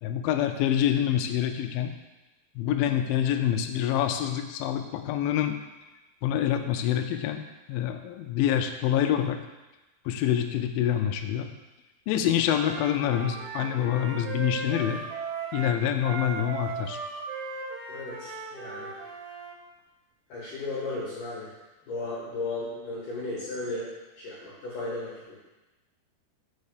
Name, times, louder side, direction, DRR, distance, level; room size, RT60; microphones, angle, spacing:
voice 1, 0.0-1.9 2.6-5.6 6.2-7.4 7.7-9.4 10.1-11.5 12.1-15.0 15.5-17.0, left 10 dB, 85° left, 6 dB, 2.1 m, -26 dB
Wind instrument woodwind instrument, 12.5-19.6, right 5 dB, 80° right, 3.3 m, -37 dB
voice 2, 17.9-19.0 20.3-21.5 21.9-23.9 24.2-25.4, left 2 dB, 65° left, -6 dB, 2.4 m, -35 dB
5.5 x 5.4 x 6.6 m, 1.1 s
omnidirectional pair, 4.8 m